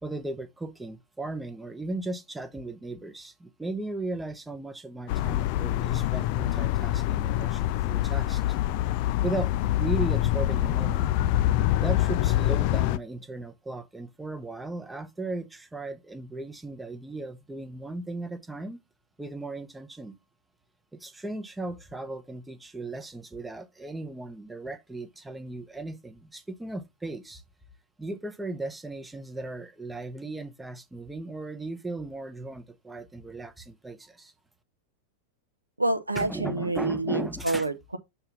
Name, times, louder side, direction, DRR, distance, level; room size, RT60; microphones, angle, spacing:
voice 1, 0.0-8.6 9.2-11.1 11.8-18.8 19.2-20.2 20.9-27.4 28.0-34.3 36.2-37.7, right 2 dB, 10° right, 0.7 m, -36 dB
Train passing, 5.1-13.0, left 14 dB, 45° left, 0.3 m, -25 dB
voice 2, 35.8-38.0, right 2 dB, 85° right, 0.6 m, -28 dB
6.7 x 2.8 x 5.7 m
figure-of-eight pair, 90°, 0 cm